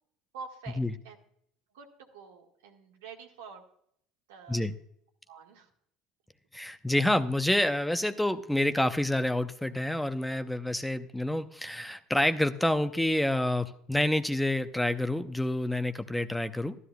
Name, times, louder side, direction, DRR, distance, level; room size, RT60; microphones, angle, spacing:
voice 1, 0.3-0.8 1.0-1.2 1.7-3.6 4.3-4.6 5.3-5.7 6.6-6.8, right 5 dB, 85° right, 2 dB, 1.7 m, -47 dB
voice 2, 6.5-16.8, left 1 dB, 5° left, 10 dB, 0.6 m, -28 dB
13.0 x 12.5 x 2.2 m, 0.69 s
supercardioid pair, 85°, 0 cm